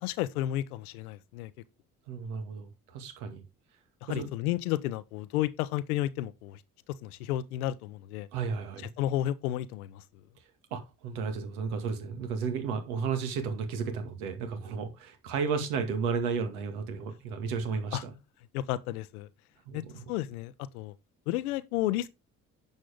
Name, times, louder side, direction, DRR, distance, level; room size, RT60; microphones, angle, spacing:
voice 1, 0.0-1.5 4.0-6.6 7.0-8.3 9.0-10.0 17.9-18.0 18.5-19.3 19.7-19.8 20.1-20.9 21.3-22.1, left 13 dB, 75° left, 0.8 m, -32 dB
voice 2, 2.1-3.4 4.1-4.3 8.3-8.9 10.7-18.1 19.7-20.0, right 5 dB, 75° right, 2.3 m, -33 dB
10.5 x 7.4 x 3.6 m
figure-of-eight pair, 45°, 44 cm